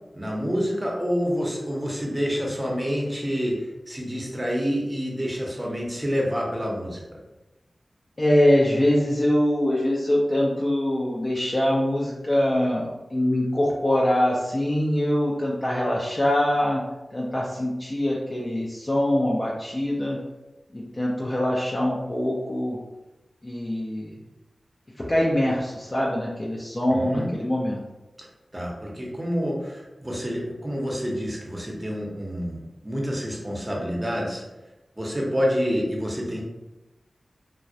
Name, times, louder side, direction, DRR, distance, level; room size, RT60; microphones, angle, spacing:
voice 1, 0.1-7.0 26.9-27.3 28.2-28.3 28.5-34.4 35.0-36.4, equal, 20° right, -2 dB, 0.7 m, -28 dB
voice 2, 8.2-16.8 17.1-20.2 20.7-22.8 23.4-24.2 25.0-27.8, left 1 dB, 35° left, -4 dB, 0.4 m, -23 dB
2.2 x 2.1 x 2.6 m, 1.0 s
cardioid pair, 40°, 0 cm